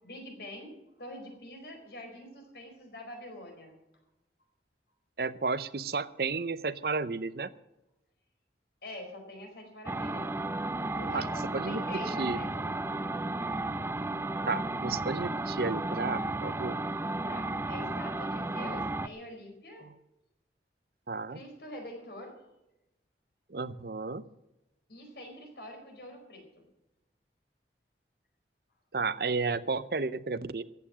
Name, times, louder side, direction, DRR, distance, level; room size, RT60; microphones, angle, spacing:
voice 1, 0.0-3.8 8.8-10.3 11.0-12.8 17.3-19.9 21.3-22.4 24.9-26.5, left 1 dB, 65° left, 3 dB, 4.5 m, -45 dB
voice 2, 5.2-7.5 11.1-11.3 11.5-12.4 14.5-16.8 19.8-19.9 21.1-21.4 23.5-24.2 28.9-30.6, right 4 dB, 55° right, 15 dB, 0.6 m, -32 dB
sound 1, 9.9-19.1, right 2 dB, 15° right, 0.4 m, -33 dB
15.0 x 9.0 x 7.5 m, 0.91 s
head